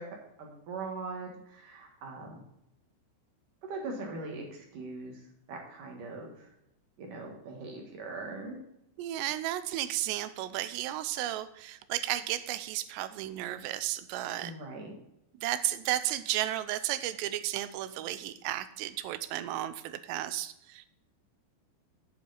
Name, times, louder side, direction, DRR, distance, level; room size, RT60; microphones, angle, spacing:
voice 1, 0.0-2.4 3.6-6.5 7.0-8.6 14.4-15.0, right 3 dB, 60° right, 1 dB, 2.7 m, -41 dB
voice 2, 9.0-14.5 15.4-20.9, right 13 dB, 85° right, 13 dB, 2.8 m, -33 dB
9.1 x 8.5 x 4.0 m, 0.82 s
omnidirectional pair, 4.9 m